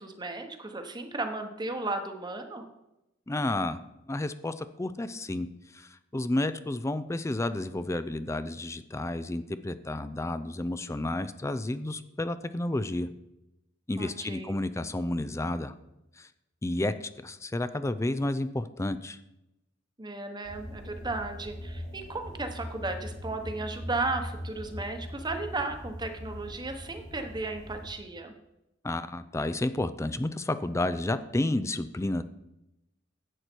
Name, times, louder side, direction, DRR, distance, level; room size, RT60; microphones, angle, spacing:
voice 1, 0.0-2.7 14.0-14.6 20.0-28.3, right 2 dB, 20° right, 6 dB, 1.0 m, -35 dB
voice 2, 3.3-3.8 4.1-5.5 5.7-13.1 13.9-15.7 16.2-16.3 16.6-19.2 28.8-32.2, left 1 dB, 15° left, 13 dB, 0.4 m, -31 dB
sound 1, 20.4-27.9, equal, 90° left, 4.5 m, -41 dB
11.0 x 8.1 x 4.5 m, 0.90 s
head